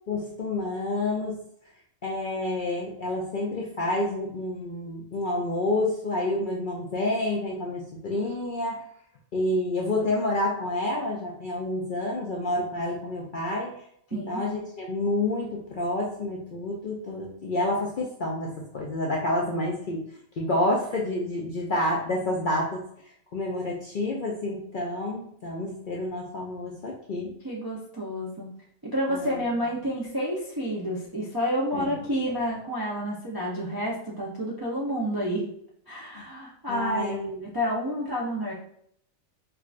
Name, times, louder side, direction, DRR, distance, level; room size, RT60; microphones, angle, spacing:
voice 1, 0.1-1.4 2.0-8.8 9.3-13.7 14.1-20.0 20.4-22.8 23.3-27.3 29.1-29.4 31.7-31.9 36.1-36.3 36.7-37.4, left 1 dB, 60° left, -2 dB, 0.5 m, -29 dB
voice 2, 14.1-14.4 27.4-28.5 28.8-35.5 35.9-37.2 37.4-38.5, equal, 40° right, -5 dB, 0.3 m, -29 dB
4.6 x 2.3 x 2.4 m, 0.68 s
omnidirectional pair, 1.4 m